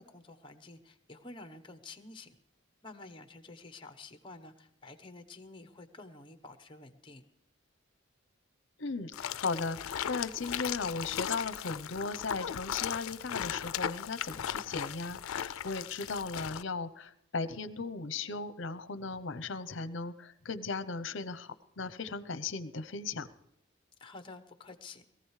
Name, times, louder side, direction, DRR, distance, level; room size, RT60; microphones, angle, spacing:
voice 1, 0.0-2.4 2.8-7.2 24.0-25.0, left 3 dB, 25° left, 8 dB, 1.0 m, -50 dB
voice 2, 8.8-23.3, left 4 dB, 60° left, 13 dB, 0.8 m, -37 dB
sound 1, 9.1-16.6, left 9 dB, 85° left, 0.4 m, -37 dB
21.5 x 15.0 x 3.3 m, 0.80 s
head